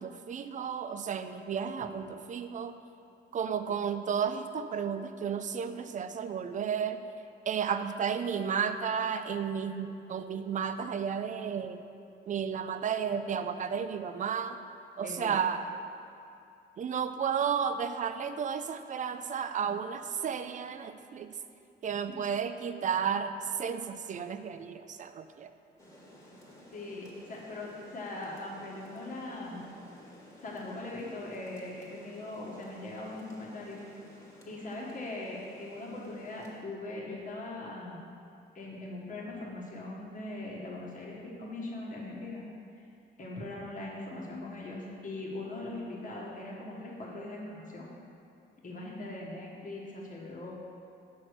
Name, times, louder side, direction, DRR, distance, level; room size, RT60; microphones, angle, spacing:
voice 1, 0.0-2.7 3.3-7.0 7.5-11.8 12.3-14.6 15.0-15.7 16.8-21.3 21.8-25.5, right 7 dB, 40° right, 10 dB, 0.4 m, -33 dB
voice 2, 15.0-15.3 26.7-29.7 30.4-33.8 34.5-38.0 38.5-42.5 42.7-42.8 43.2-47.9 48.6-50.5, left 2 dB, 40° left, -3 dB, 1.3 m, -40 dB
Rain, 25.8-36.6, equal, 15° left, 1.5 m, -54 dB
6.0 x 4.6 x 6.5 m, 2.6 s
cardioid pair, 90°, 20 cm